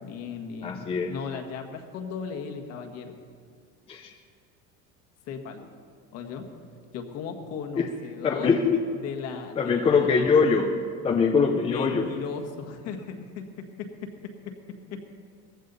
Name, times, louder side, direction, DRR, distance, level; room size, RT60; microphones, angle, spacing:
voice 1, 0.0-3.2 5.2-5.7 6.1-6.5 6.9-8.5 9.0-10.2 11.7-14.6 14.9-15.0, left 6 dB, 50° left, 5 dB, 1.7 m, -37 dB
voice 2, 0.6-1.1 3.9-4.1 7.8-7.9 8.2-8.8 9.6-10.7 11.0-12.1, left 5 dB, 20° left, 3 dB, 0.6 m, -22 dB
19.0 x 15.0 x 4.1 m, 2.2 s
cardioid pair, 155°, 32 cm